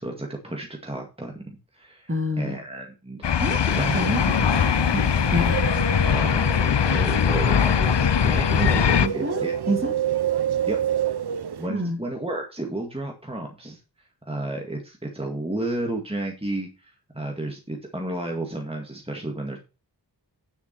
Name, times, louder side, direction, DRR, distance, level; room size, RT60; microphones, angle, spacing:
voice 1, 0.0-2.1 2.4-3.4 3.8-4.0 6.0-9.5 10.7-10.8 11.6-13.8 14.3-19.6, right 1 dB, 15° right, 1 dB, 2.0 m, -32 dB
voice 2, 2.1-2.6 3.4-3.6 3.9-4.6 4.9-5.5 8.6-8.7 9.0-9.4 9.7-9.9 11.7-12.0, right 1 dB, 30° right, 4 dB, 2.7 m, -27 dB
sound 1, 3.2-9.1, left 8 dB, 80° left, 0.6 m, -21 dB
sound 2, 3.7-11.7, right 9 dB, 65° right, 0.7 m, -29 dB
9.6 x 7.2 x 4.5 m, 0.31 s
wide cardioid pair, 40°, 42 cm